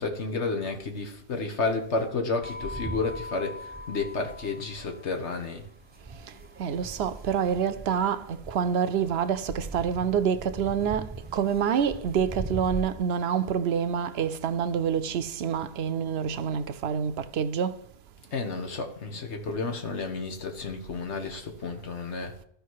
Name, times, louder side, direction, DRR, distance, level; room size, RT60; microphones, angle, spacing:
voice 1, 0.0-5.6 18.3-22.3, left 3 dB, 90° left, 1.7 m, -31 dB
sound 1, 2.4-13.0, right 1 dB, 10° right, 0.8 m, -40 dB
voice 2, 6.6-17.8, right 7 dB, 70° right, 0.9 m, -27 dB
13.5 x 5.0 x 4.7 m
omnidirectional pair, 1.1 m